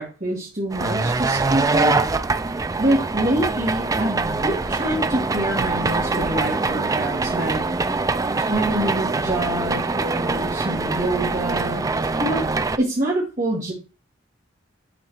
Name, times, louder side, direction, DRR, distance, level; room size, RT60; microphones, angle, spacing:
voice 1, 0.0-1.9 2.8-7.6 8.4-11.8 12.2-13.7, right 1 dB, 40° right, -6 dB, 2.1 m, -26 dB
sound 1, 0.7-12.8, right 3 dB, 20° right, 0.3 m, -23 dB
10.0 x 3.9 x 3.1 m, 0.33 s
head